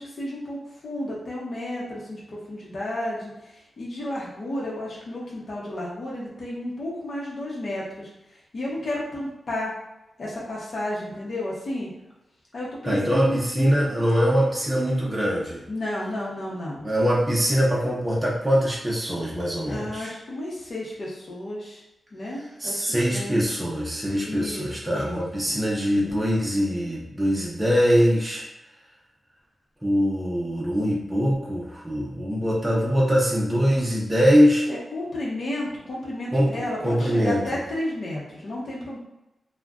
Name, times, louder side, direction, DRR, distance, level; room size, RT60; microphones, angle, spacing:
voice 1, 0.0-8.1 8.5-9.7 10.2-11.9 12.5-13.8 15.7-16.9 19.7-21.8 22.1-23.4 24.2-25.6 34.7-39.0, left 1 dB, 55° left, -5 dB, 0.8 m, -32 dB
voice 2, 12.8-15.6 16.8-20.1 22.6-28.4 29.8-34.6 36.3-37.4, equal, 10° right, -5 dB, 0.6 m, -23 dB
2.4 x 2.2 x 3.5 m, 0.94 s
wide cardioid pair, 165°, 0 cm